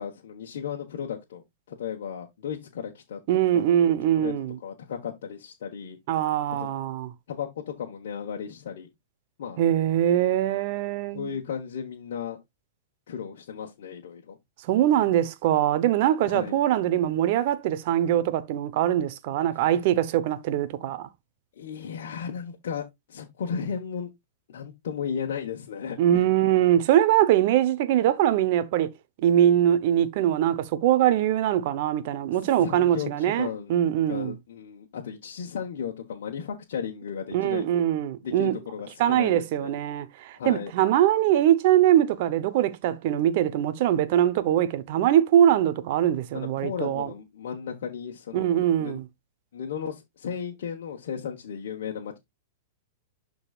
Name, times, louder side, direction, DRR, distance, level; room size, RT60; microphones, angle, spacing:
voice 1, 0.0-3.2 3.5-4.3 4.6-6.0 6.6-6.7 7.3-8.9 9.4-9.6 11.1-12.4 13.1-14.4 16.3-16.6 21.6-24.1 24.5-26.2 32.3-33.8 34.1-37.7 38.2-39.7 40.4-40.7 46.3-49.0 49.5-52.2, left 7 dB, 70° left, 1.3 m, -35 dB
voice 2, 3.3-4.6 6.1-7.1 9.6-11.3 14.6-21.1 26.0-28.9 29.2-34.3 37.3-38.5 39.0-47.1 48.3-49.0, right 11 dB, 55° right, 0.9 m, -22 dB
12.0 x 4.0 x 2.4 m
hypercardioid pair, 130°, 0 cm